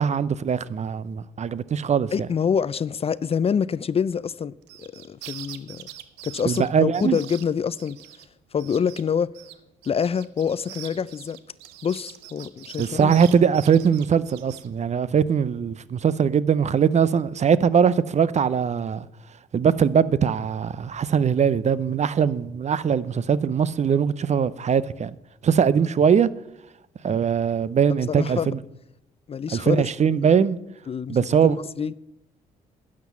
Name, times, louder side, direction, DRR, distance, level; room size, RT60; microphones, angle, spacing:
voice 1, 0.0-2.1 6.5-7.2 12.8-19.1 19.5-25.1 25.4-26.3 27.0-28.6 29.5-30.6 31.1-31.6, right 7 dB, 40° right, 0.7 m, -21 dB
voice 2, 2.1-5.9 6.2-8.0 8.5-9.3 9.8-11.4 11.8-13.2 28.1-28.5 29.3-29.8 30.1-30.3 30.9-31.2 31.4-31.9, left 7 dB, 35° left, 0.4 m, -26 dB
sound 1, 4.6-8.3 8.6-9.0 9.3-14.7, right 14 dB, 80° right, 0.8 m, -43 dB
11.5 x 7.6 x 7.0 m
hypercardioid pair, 50°, 17 cm